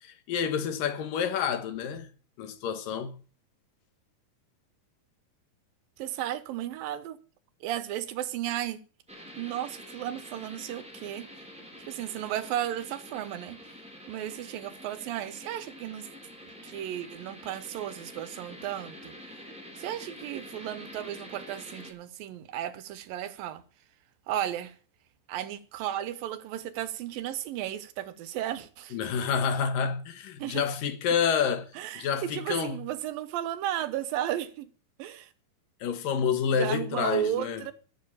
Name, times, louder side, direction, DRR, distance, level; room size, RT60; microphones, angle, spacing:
voice 1, 0.0-2.1 2.4-3.2 28.9-32.8 35.8-37.7, left 7 dB, 75° left, 3.0 m, -29 dB
voice 2, 6.0-7.2 7.6-8.8 9.4-11.3 11.9-13.6 14.1-16.1 16.6-19.1 19.8-23.6 24.3-24.7 25.3-29.0 30.4-30.6 31.8-34.7 35.0-35.3 36.5-37.7, right 12 dB, 80° right, 2.8 m, -34 dB
sound 1, 9.1-21.9, equal, ahead, 3.5 m, -47 dB
14.0 x 8.0 x 8.6 m
omnidirectional pair, 4.0 m